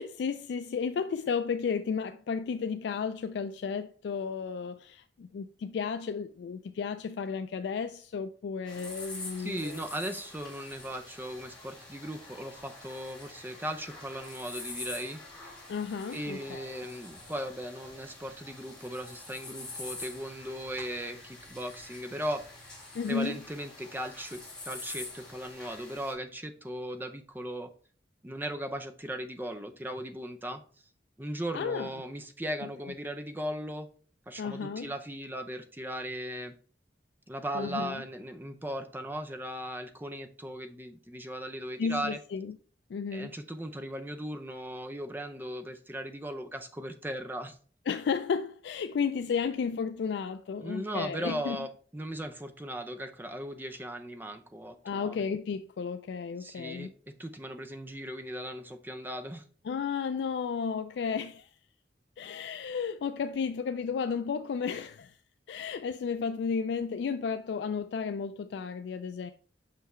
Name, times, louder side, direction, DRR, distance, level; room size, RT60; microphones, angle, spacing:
voice 1, 0.0-9.8 15.7-16.7 22.9-23.4 31.5-32.0 32.6-32.7 34.4-34.9 37.5-38.0 41.8-42.6 42.9-43.3 47.9-51.6 54.8-56.9 59.6-61.5 62.2-65.2 65.5-69.3, left 6 dB, 70° left, 0.3 m, -33 dB
sound 1, 8.7-26.1, left 2 dB, 5° left, 2.1 m, -46 dB
voice 2, 9.4-15.5 16.1-22.5 23.1-27.7 28.2-30.6 31.2-33.9 34.3-36.5 37.3-42.2 43.1-47.6 50.6-55.2 56.4-59.4, equal, 10° right, 0.5 m, -38 dB
5.7 x 5.5 x 3.1 m
head